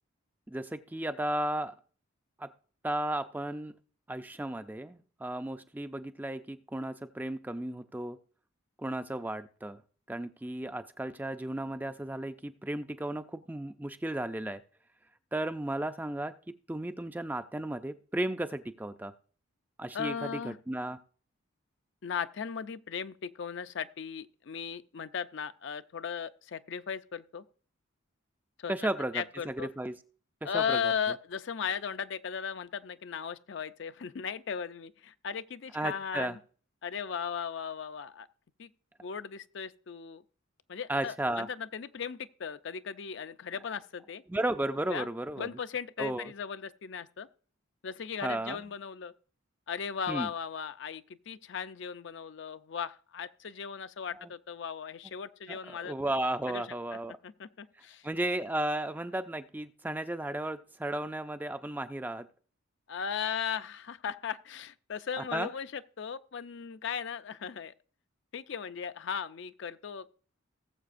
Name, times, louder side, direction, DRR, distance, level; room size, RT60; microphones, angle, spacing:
voice 1, 0.5-1.7 2.4-2.5 2.8-3.7 4.1-8.2 8.8-9.8 10.1-14.6 15.3-19.1 19.8-21.0 28.7-30.0 30.4-30.9 35.7-36.4 40.9-41.5 44.3-45.5 46.0-46.3 48.2-48.6 50.1-50.3 54.1-54.3 55.5-57.2 58.0-62.3 65.2-65.5, right 1 dB, 10° right, 0.3 m, -34 dB
voice 2, 19.9-20.6 22.0-27.4 28.6-28.7 29.1-29.7 30.4-36.4 36.8-38.3 38.6-38.7 39.0-40.2 40.7-44.2 44.9-45.1 45.4-47.3 47.8-49.1 49.7-55.9 56.5-56.6 56.9-57.0 57.2-58.0 62.9-67.7 68.3-70.1, left 7 dB, 60° left, 0.4 m, -37 dB
19.0 x 7.4 x 2.5 m
head